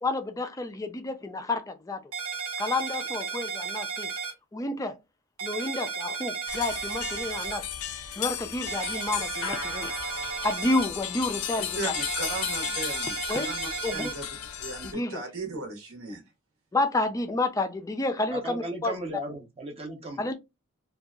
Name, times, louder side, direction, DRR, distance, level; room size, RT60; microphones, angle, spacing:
voice 1, 0.0-2.1 2.6-4.1 4.5-5.0 5.4-7.6 8.2-9.9 10.4-11.9 13.3-13.5 13.8-14.1 14.8-15.2 16.7-18.9 20.2-20.3, left 2 dB, 15° left, 0.3 m, -30 dB
sound 1, 2.1-4.3 5.4-7.6 8.7-10.9 11.9-14.1, right 5 dB, 90° right, 1.1 m, -34 dB
sound 2, 6.5-14.9, left 9 dB, 85° left, 0.5 m, -35 dB
voice 2, 11.6-14.2 14.6-16.2, right 2 dB, 65° right, 1.0 m, -37 dB
voice 3, 18.3-20.3, right 1 dB, 25° right, 0.6 m, -36 dB
2.7 x 2.3 x 2.3 m
head